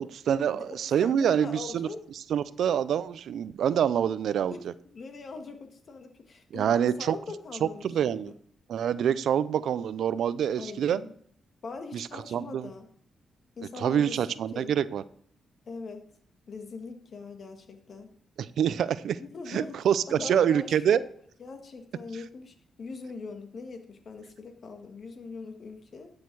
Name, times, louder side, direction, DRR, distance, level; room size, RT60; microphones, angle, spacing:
voice 1, 0.0-1.9 2.3-4.7 6.5-7.2 7.6-8.3 8.7-11.0 11.9-12.7 13.8-15.0 18.4-19.2 19.5-21.0, right 9 dB, 75° right, 16 dB, 0.5 m, -26 dB
voice 2, 1.0-2.0 4.9-8.3 10.6-11.1 11.6-12.9 13.6-14.7 15.7-16.0 16.5-18.1 19.2-19.8 20.1-21.0 21.4-26.1, left 4 dB, 55° left, 5 dB, 1.7 m, -41 dB
12.5 x 6.6 x 4.7 m, 0.63 s
cardioid pair, 75°, 0 cm